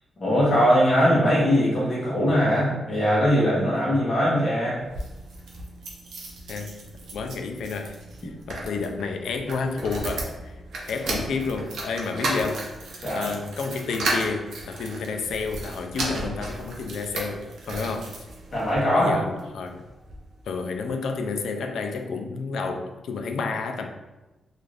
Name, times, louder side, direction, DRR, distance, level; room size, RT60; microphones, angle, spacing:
voice 1, 0.2-4.8 13.0-13.3 18.5-19.2, equal, 30° left, -7 dB, 0.8 m, -21 dB
sound 1, 4.8-18.8 19.4-20.2 20.6-20.7 20.9-21.0, right 2 dB, 75° right, 0.6 m, -34 dB
voice 2, 7.1-7.9 8.5-10.6 10.9-12.6 13.1-18.1 18.9-19.8 20.5-23.9, left 4 dB, 75° left, 5 dB, 0.3 m, -30 dB
2.5 x 2.4 x 3.2 m, 1.1 s
wide cardioid pair, 165°, 0 cm